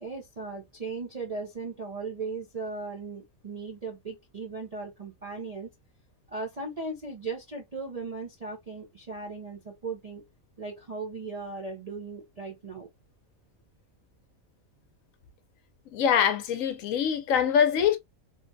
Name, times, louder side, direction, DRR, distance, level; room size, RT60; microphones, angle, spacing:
voice 1, 0.0-5.7 6.3-10.2 10.6-12.9, right 4 dB, 55° right, 0.4 m, -37 dB
voice 2, 15.9-18.0, left 8 dB, 75° left, 1.0 m, -24 dB
3.2 x 2.2 x 2.5 m
omnidirectional pair, 1.5 m